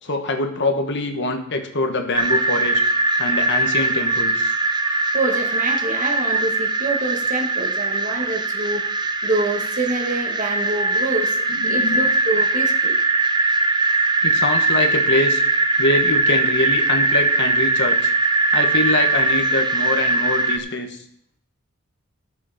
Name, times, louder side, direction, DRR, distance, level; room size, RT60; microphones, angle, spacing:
voice 1, 0.0-2.8 3.2-4.5 11.5-12.1 14.2-15.4 15.8-18.1 18.5-21.0, left 2 dB, 60° left, 5 dB, 1.4 m, -24 dB
sound 1, 2.1-20.6, right 3 dB, 20° right, 0.6 m, -20 dB
voice 2, 5.1-8.9 9.2-11.4 11.6-13.0, right 2 dB, 40° right, 2 dB, 1.7 m, -26 dB
13.0 x 7.1 x 5.0 m, 0.67 s
head